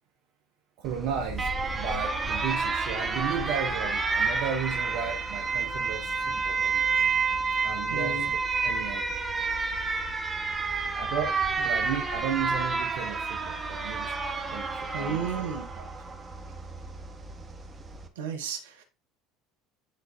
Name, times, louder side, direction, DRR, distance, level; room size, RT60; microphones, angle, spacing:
Alarm, 0.8-18.1, right 4 dB, 20° right, 1.3 m, -30 dB
voice 1, 0.8-7.1 7.6-9.2 10.9-14.1 14.5-15.8, right 7 dB, 60° right, 0.9 m, -35 dB
voice 2, 7.9-8.3 14.9-15.7 18.2-18.6, right 5 dB, 80° right, 1.2 m, -32 dB
9.7 x 3.9 x 2.7 m
hypercardioid pair, 70°, 0 cm